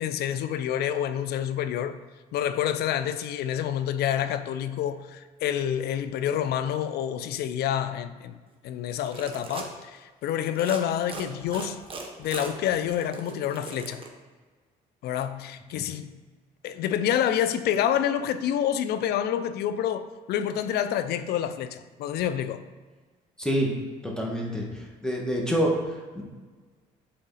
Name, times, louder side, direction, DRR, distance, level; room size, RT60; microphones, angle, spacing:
voice 1, 0.0-2.0 2.3-8.3 8.6-11.8 12.2-14.0 15.0-16.2 16.6-22.6, left 10 dB, 70° left, 0.5 m, -28 dB
sound 1, 8.9-9.7 10.5-10.8 11.1-14.1, right 4 dB, 30° right, 1.4 m, -39 dB
voice 2, 23.4-23.7 24.0-24.6 25.0-25.7 26.1-26.2, equal, 5° left, 1.7 m, -26 dB
7.7 x 3.9 x 4.1 m
supercardioid pair, 75°, 17 cm